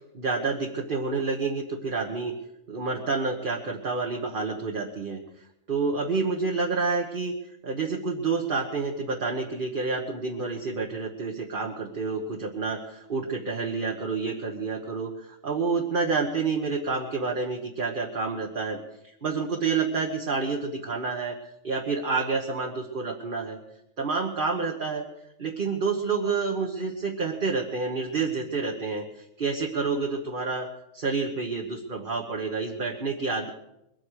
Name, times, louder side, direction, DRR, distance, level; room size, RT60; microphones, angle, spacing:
voice 1, 0.1-2.3 2.7-5.2 5.7-7.3 7.6-18.8 19.2-21.4 21.6-23.6 24.0-25.1 25.4-30.7 30.9-33.5, right 4 dB, 40° right, 1 dB, 1.5 m, -29 dB
22.0 x 9.1 x 6.4 m, 0.84 s
omnidirectional pair, 1.4 m